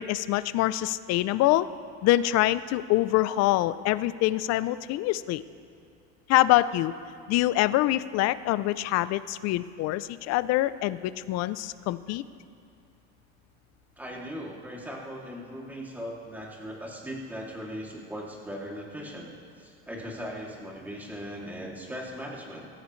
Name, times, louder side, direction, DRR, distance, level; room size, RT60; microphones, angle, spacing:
voice 1, 0.0-1.7 2.0-5.4 6.3-6.9 7.3-12.2, left 15 dB, 45° left, 16 dB, 0.5 m, -25 dB
voice 2, 14.0-19.3 19.6-22.7, equal, 5° right, -3 dB, 2.6 m, -39 dB
25.0 x 15.0 x 3.2 m, 2.4 s
supercardioid pair, 125°, 36 cm